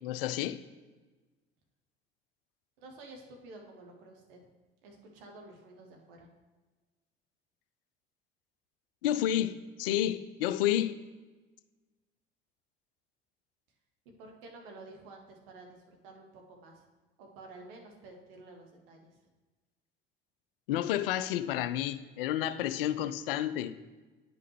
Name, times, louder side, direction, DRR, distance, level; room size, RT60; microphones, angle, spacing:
voice 1, 0.0-0.6 9.0-11.0 20.7-23.7, left 12 dB, 65° left, 0.5 m, -30 dB
voice 2, 2.8-4.4 4.8-6.3 14.2-16.8 17.2-19.2, right 2 dB, 65° right, 1.3 m, -51 dB
9.5 x 5.5 x 3.2 m
figure-of-eight pair, 60°, 30 cm